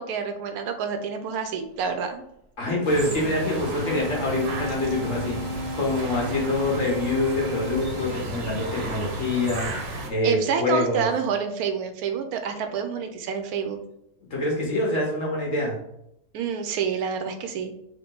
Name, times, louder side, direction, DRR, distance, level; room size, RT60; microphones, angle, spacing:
voice 1, 0.0-2.2 10.2-13.8 16.3-17.7, right 7 dB, 80° right, 6 dB, 1.1 m, -28 dB
voice 2, 2.6-11.1 14.3-15.8, left 2 dB, 55° left, -3 dB, 1.6 m, -26 dB
sound 1, 2.8-10.1, right 1 dB, 60° right, 1.1 m, -33 dB
Wind instrument woodwind instrument, 3.6-8.4, equal, 35° left, 0.8 m, -34 dB
3.6 x 3.0 x 3.8 m, 0.79 s
omnidirectional pair, 1.6 m